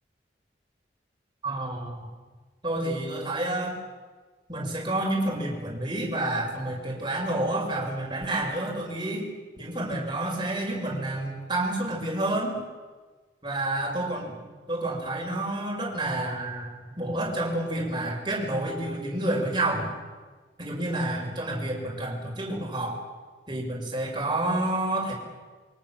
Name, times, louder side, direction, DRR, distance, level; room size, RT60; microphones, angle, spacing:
voice 1, 1.4-2.1 2.6-3.8 4.5-9.3 9.6-12.6 13.4-14.4 14.7-19.9 20.6-23.0 23.5-25.1, right 1 dB, 25° right, -1 dB, 6.3 m, -29 dB
27.5 x 24.0 x 7.5 m, 1.4 s
head